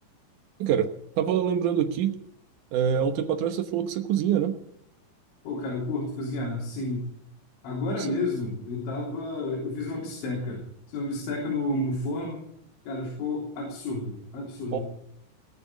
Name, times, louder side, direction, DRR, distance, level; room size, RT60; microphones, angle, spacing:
voice 1, 1.2-2.1 2.7-4.5 14.7-14.8, right 9 dB, 75° right, 7 dB, 1.9 m, -25 dB
voice 2, 5.4-7.1 7.6-12.4 12.9-14.8, left 2 dB, 85° left, -3 dB, 5.9 m, -31 dB
20.5 x 6.9 x 9.7 m, 0.72 s
omnidirectional pair, 5.2 m